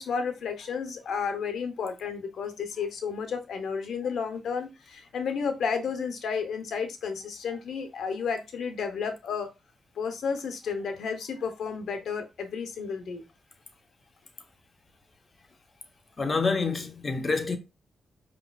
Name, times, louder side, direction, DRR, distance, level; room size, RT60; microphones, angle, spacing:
voice 1, 0.0-9.5 10.0-13.2, left 6 dB, 75° left, 0.9 m, -32 dB
voice 2, 16.2-17.6, left 4 dB, 35° left, 0.9 m, -27 dB
5.1 x 3.0 x 2.3 m
cardioid pair, 60°, 0 cm